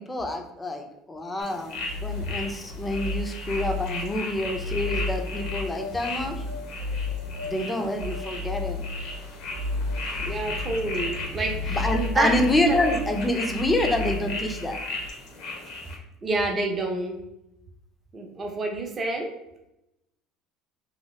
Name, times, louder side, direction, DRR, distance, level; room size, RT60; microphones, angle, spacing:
voice 1, 0.0-6.4 7.4-8.8 11.7-14.8, left 1 dB, 10° left, 4 dB, 0.5 m, -27 dB
sound 1, 1.4-16.0, left 3 dB, 65° left, 0.7 m, -36 dB
sound 2, 1.7-15.1, left 3 dB, 85° right, 0.7 m, -33 dB
voice 2, 10.2-12.9 16.2-17.2 18.1-19.3, right 2 dB, 25° right, 2 dB, 0.6 m, -28 dB
2.9 x 2.8 x 3.1 m, 0.86 s
cardioid pair, 125°, 0 cm